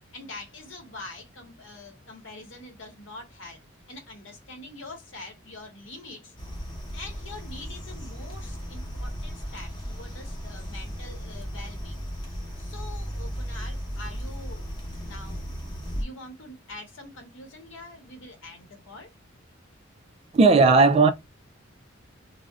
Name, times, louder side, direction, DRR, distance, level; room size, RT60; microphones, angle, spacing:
voice 1, 0.1-3.6 3.9-6.3 6.9-14.7 15.0-15.5 16.0-19.1, left 2 dB, 65° left, 1.0 m, -44 dB
sound 1, 6.4-16.0, equal, 20° left, 0.8 m, -35 dB
voice 2, 20.3-21.1, right 3 dB, 30° right, 0.3 m, -16 dB
2.4 x 2.0 x 3.4 m
head